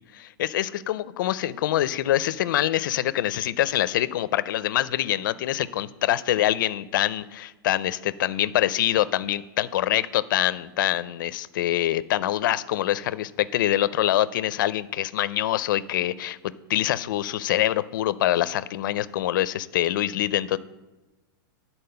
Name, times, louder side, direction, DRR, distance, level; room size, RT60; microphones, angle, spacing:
voice 1, 0.1-16.4 16.7-20.6, left 13 dB, 60° left, 16 dB, 0.4 m, -25 dB
10.5 x 4.2 x 6.7 m, 1.1 s
supercardioid pair, 165°, 12 cm